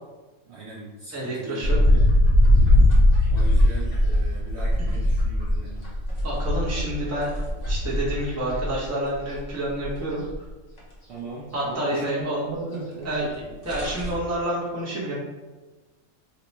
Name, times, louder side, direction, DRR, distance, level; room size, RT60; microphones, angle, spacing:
voice 1, 0.5-2.0 3.3-5.9 7.8-8.0 11.1-13.3, right 3 dB, 65° right, -5 dB, 0.7 m, -38 dB
voice 2, 1.1-1.8 4.9-5.0 6.2-7.3 7.7-10.2 11.5-12.4 13.0-15.1, right 1 dB, 15° right, -7 dB, 0.7 m, -28 dB
sound 1, 1.6-8.8 9.1-10.0 10.3-10.4 10.8-10.9 12.9-13.0 13.3-13.4 13.6-14.1, left 1 dB, 40° left, 0.7 m, -20 dB
2.9 x 2.1 x 4.1 m, 1.2 s
omnidirectional pair, 1.5 m